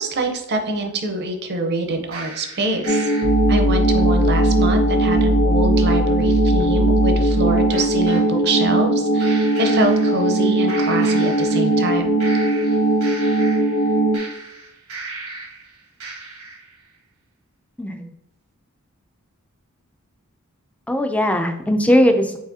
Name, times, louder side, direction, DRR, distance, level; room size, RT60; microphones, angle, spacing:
voice 1, 0.0-3.1 3.5-12.2, right 2 dB, 50° right, 5 dB, 0.7 m, -25 dB
sound 1, 2.1-8.2 9.2-10.4 10.7-11.9 12.2-15.6 16.0-16.6, equal, 75° right, 1.2 m, -25 dB
sound 2, 2.9-14.2, right 2 dB, 40° left, 0.7 m, -19 dB
voice 2, 17.8-18.1 20.9-22.4, equal, 5° left, 6 dB, 0.4 m, -18 dB
4.7 x 4.1 x 2.7 m, 0.84 s
head